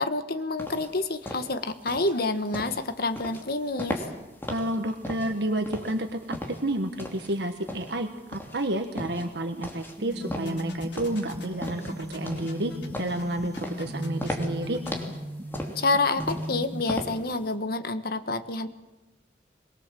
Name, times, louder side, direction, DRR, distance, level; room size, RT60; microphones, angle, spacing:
voice 1, 0.0-4.0 15.7-18.7, left 2 dB, 60° left, 10 dB, 1.4 m, -28 dB
sound 1, 0.6-17.5, left 1 dB, 15° left, 3.1 m, -37 dB
voice 2, 4.5-12.7 13.0-14.8, right 1 dB, 70° right, 6 dB, 1.4 m, -30 dB
sound 2, 10.0-16.8, right 1 dB, 25° right, 1.4 m, -38 dB
sound 3, 10.1-15.1, left 2 dB, 90° left, 3.6 m, -39 dB
23.5 x 22.0 x 7.7 m, 1.0 s
head